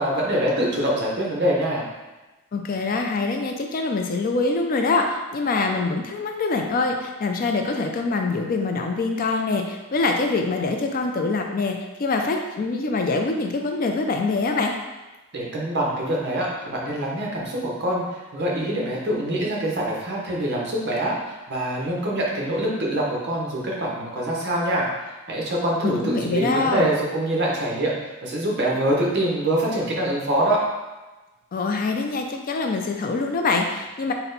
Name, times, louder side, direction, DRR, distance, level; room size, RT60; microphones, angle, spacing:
voice 1, 0.0-1.9 15.3-24.9 25.3-30.6, right 1 dB, 50° right, -3 dB, 0.8 m, -24 dB
voice 2, 2.5-14.7 25.8-26.9 31.5-34.1, left 3 dB, 40° left, 3 dB, 0.3 m, -24 dB
4.2 x 2.1 x 3.9 m, 1.1 s
head